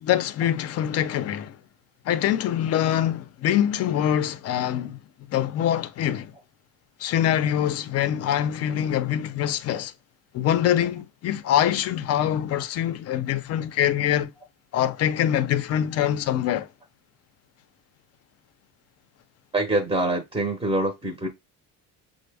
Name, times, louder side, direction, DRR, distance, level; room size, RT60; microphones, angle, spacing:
voice 1, 0.0-1.6 2.1-5.0 5.3-6.3 7.0-9.9 10.3-14.3 14.7-16.7, left 10 dB, 45° left, 0.4 m, -24 dB
voice 2, 19.5-21.3, right 2 dB, 15° right, 0.6 m, -25 dB
5.9 x 2.0 x 3.3 m
cardioid pair, 150°, 36 cm